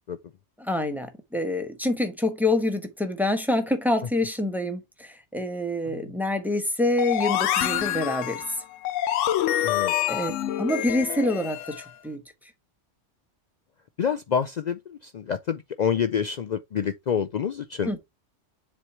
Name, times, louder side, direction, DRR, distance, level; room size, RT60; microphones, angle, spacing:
voice 1, 0.6-8.4 9.6-9.7 10.1-10.3 10.6-12.2 17.8-18.0, left 1 dB, ahead, 1.1 m, -26 dB
sound 1, 7.0-11.9, left 12 dB, 90° left, 1.0 m, -27 dB
voice 2, 9.6-9.9 14.0-17.9, left 7 dB, 75° left, 0.4 m, -27 dB
7.4 x 3.2 x 4.3 m
omnidirectional pair, 1.3 m